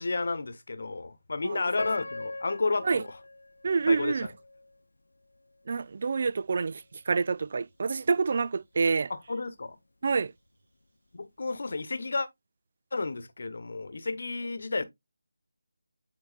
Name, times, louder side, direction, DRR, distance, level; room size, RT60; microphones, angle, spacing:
voice 1, 0.0-3.2 3.9-4.3 9.1-9.8 11.1-12.3 12.9-14.8, left 3 dB, 55° left, 1.0 m, -32 dB
Piano, 1.8-4.8 5.3-5.4 6.1-6.3, left 2 dB, 75° left, 0.4 m, -41 dB
voice 2, 3.6-4.3 5.7-9.1 10.0-10.3, right 4 dB, 45° right, 0.3 m, -27 dB
9.5 x 4.6 x 2.4 m
figure-of-eight pair, 165°, 0 cm